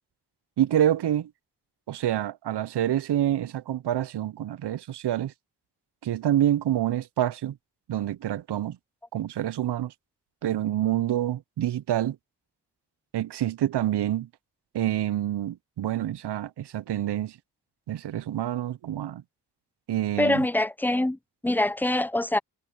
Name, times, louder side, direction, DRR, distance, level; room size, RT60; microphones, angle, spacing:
voice 1, 0.6-1.3 1.9-5.3 6.0-7.6 7.9-8.8 9.1-9.9 10.4-12.2 13.1-14.3 14.7-17.4 17.9-19.2 19.9-20.5, right 12 dB, 75° right, 0.5 m, -27 dB
voice 2, 20.2-22.4, left 1 dB, 5° left, 0.5 m, -25 dB
cardioid pair, 50°, 41 cm